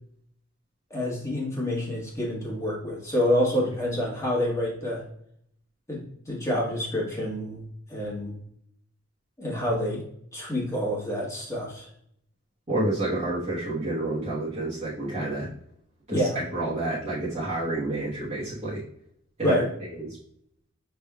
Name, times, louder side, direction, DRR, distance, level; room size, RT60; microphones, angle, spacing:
voice 1, 0.9-5.0 5.9-6.0 6.3-7.6 7.9-8.4 9.4-10.0 10.3-11.9 16.1-16.4 19.4-19.7, equal, 15° left, -4 dB, 1.4 m, -27 dB
voice 2, 12.7-15.5 16.1-18.8 19.4-20.2, right 2 dB, 35° right, -9 dB, 1.2 m, -29 dB
6.1 x 3.4 x 2.3 m, 0.69 s
head